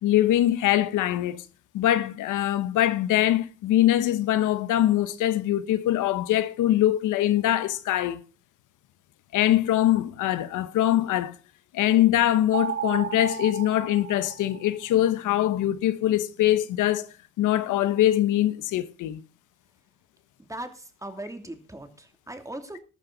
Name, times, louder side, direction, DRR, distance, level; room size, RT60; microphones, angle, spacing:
voice 1, 0.0-1.4 1.7-8.2 9.3-11.3 11.7-17.1 17.4-19.2, left 13 dB, 85° left, 1.1 m, -23 dB
sound 1, 12.5-15.0, right 9 dB, 45° right, 0.8 m, -33 dB
voice 2, 20.4-22.8, right 1 dB, 10° right, 2.7 m, -39 dB
13.5 x 12.5 x 4.0 m
cardioid pair, 90°, 30 cm